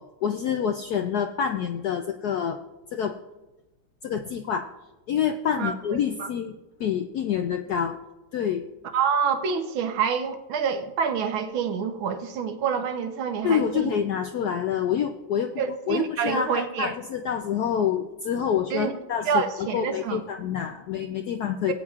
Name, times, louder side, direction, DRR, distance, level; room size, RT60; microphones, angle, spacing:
voice 1, 0.0-2.6 2.9-3.1 4.0-4.7 5.1-8.0 8.3-8.7 13.4-15.6 15.9-21.7, left 8 dB, 75° left, 6 dB, 0.9 m, -27 dB
voice 2, 8.9-13.9 15.6-16.9 18.7-18.9 19.3-20.2 21.7-21.8, right 6 dB, 75° right, 7 dB, 1.6 m, -27 dB
19.5 x 8.8 x 2.4 m, 1.0 s
omnidirectional pair, 2.2 m